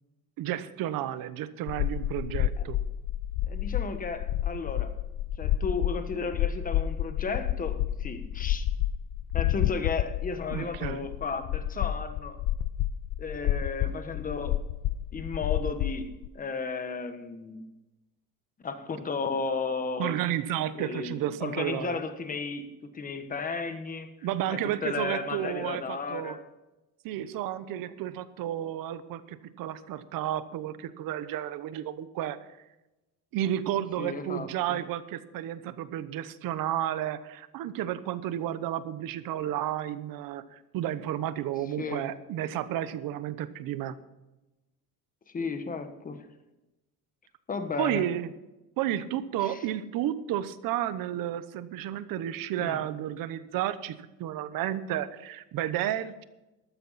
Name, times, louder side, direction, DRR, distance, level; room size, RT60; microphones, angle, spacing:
voice 1, 0.4-2.8 10.5-11.1 13.8-13.9 20.0-22.0 24.2-26.4 27.0-32.4 33.3-44.0 47.8-48.3 48.8-56.2, right 11 dB, 75° right, 13 dB, 1.0 m, -32 dB
sound 1, 1.7-16.3, left 12 dB, 65° left, 0.5 m, -30 dB
voice 2, 3.5-4.9 5.4-8.7 9.3-12.3 13.2-14.6 15.1-17.6 18.6-20.2 20.7-24.1 24.5-26.4 34.0-34.8 41.8-42.1 45.3-46.3 47.5-48.0 49.4-49.6 52.6-52.8, left 4 dB, 25° left, 8 dB, 1.3 m, -34 dB
14.0 x 12.5 x 4.2 m, 1.0 s
cardioid pair, 155°, 34 cm